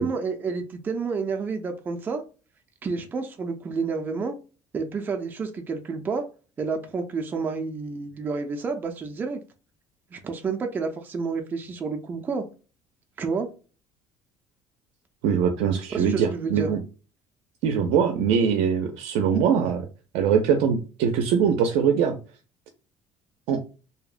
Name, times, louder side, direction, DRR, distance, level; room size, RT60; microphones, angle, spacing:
voice 1, 0.0-2.2 2.8-4.3 4.7-6.2 6.6-9.4 10.1-12.4 13.2-13.5 15.9-16.7, right 4 dB, 20° right, 4 dB, 0.3 m, -29 dB
voice 2, 15.2-16.8 17.6-19.8 20.1-22.2 23.5-23.6, right 7 dB, 90° right, 5 dB, 0.4 m, -22 dB
2.7 x 2.0 x 2.4 m, 0.34 s
cardioid pair, 165°, 10 cm